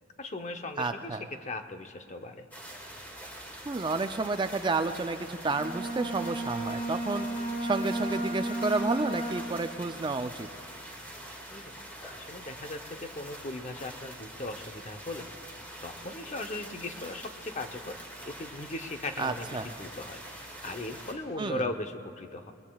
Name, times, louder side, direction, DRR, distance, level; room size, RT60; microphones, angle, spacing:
voice 1, 0.2-2.5 11.5-11.7 12.0-15.3 15.8-17.9 18.3-22.5, left 2 dB, 35° left, 7 dB, 0.7 m, -38 dB
voice 2, 0.8-1.2 3.7-7.3 7.6-10.5 19.2-19.7 21.4-21.6, right 3 dB, 25° right, 8 dB, 0.4 m, -31 dB
sound 1, 2.5-21.1, right 1 dB, 10° left, 1.9 m, -45 dB
Bowed string instrument, 5.5-9.7, right 1 dB, 70° left, 3.8 m, -33 dB
21.5 x 21.0 x 2.3 m, 2.7 s
head